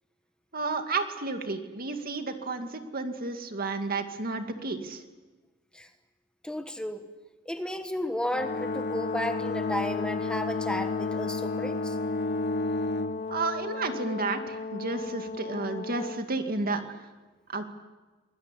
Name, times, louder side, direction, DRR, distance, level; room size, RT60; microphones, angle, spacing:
voice 1, 0.5-5.0 13.3-17.1 17.5-17.6, right 3 dB, 50° right, 6 dB, 2.3 m, -32 dB
voice 2, 6.4-7.0 7.4-12.0, left 1 dB, 5° left, 7 dB, 1.3 m, -33 dB
Brass instrument, 8.3-16.3, left 4 dB, 40° left, 0.9 m, -35 dB
Bowed string instrument, 8.4-13.3, left 3 dB, 55° left, 1.1 m, -32 dB
24.5 x 20.5 x 10.0 m, 1.3 s
head